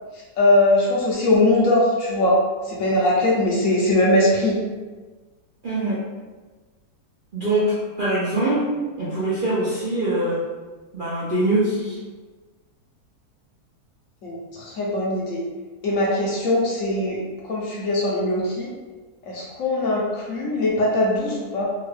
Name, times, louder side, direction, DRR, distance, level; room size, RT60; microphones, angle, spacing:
voice 1, 0.4-2.4 2.7-4.6 14.2-15.4 15.8-17.2 17.4-18.7 19.3-21.7, left 1 dB, 65° left, -4 dB, 1.0 m, -21 dB
voice 2, 5.6-6.0 7.3-8.7 9.0-10.4 10.9-12.0, right 1 dB, 50° right, -9 dB, 0.6 m, -23 dB
3.5 x 2.3 x 3.3 m, 1.3 s
omnidirectional pair, 1.7 m